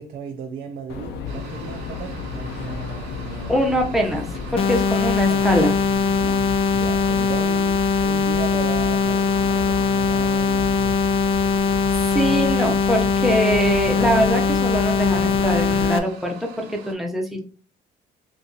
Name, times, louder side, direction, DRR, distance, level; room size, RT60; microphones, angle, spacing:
voice 1, 0.0-3.6 5.2-5.5 6.7-11.1, right 6 dB, 55° right, 2 dB, 0.6 m, -35 dB
sound 1, 0.9-15.9, left 5 dB, 80° left, 0.6 m, -32 dB
sound 2, 1.3-16.9, right 6 dB, 85° right, 0.9 m, -44 dB
voice 2, 3.5-4.3 4.5-5.7 6.1-6.3 11.5-11.6 11.9-17.5, equal, ahead, 0 dB, 0.8 m, -23 dB
sound 3, 4.6-16.0, left 5 dB, 35° left, 0.4 m, -21 dB
2.7 x 2.6 x 3.8 m, 0.39 s
cardioid pair, 110°, 17 cm